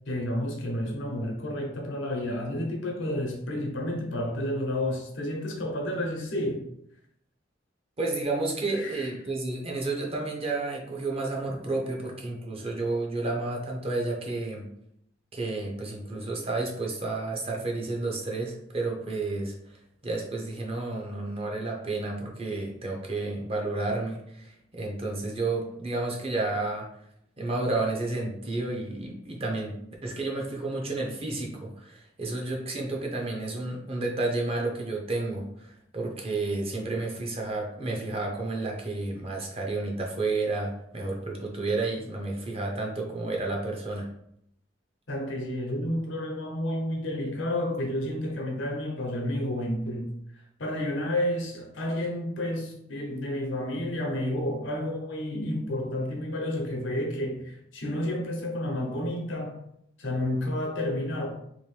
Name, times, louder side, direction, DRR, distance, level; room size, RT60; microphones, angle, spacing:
voice 1, 0.1-6.6 8.7-9.1 45.1-50.1 50.6-59.6 60.0-61.3, left 1 dB, 85° left, 0.8 m, -30 dB
voice 2, 8.0-14.6 15.3-26.9 27.4-44.1, right 2 dB, 30° right, 0.6 m, -31 dB
2.9 x 2.6 x 3.2 m
head